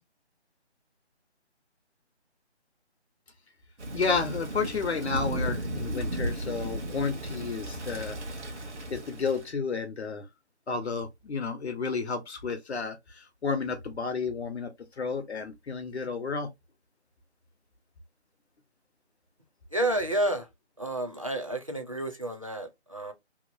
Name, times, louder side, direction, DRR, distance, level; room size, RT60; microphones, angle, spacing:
Thunder / Rain, 3.8-9.5, right 1 dB, 75° right, 1.0 m, -34 dB
voice 1, 3.9-8.2 8.9-10.2 10.7-14.7 15.0-16.5, left 5 dB, 70° left, 0.7 m, -31 dB
voice 2, 19.7-20.5 20.8-23.1, right 1 dB, 30° right, 0.5 m, -30 dB
2.9 x 2.4 x 2.5 m
figure-of-eight pair, 165°, 34 cm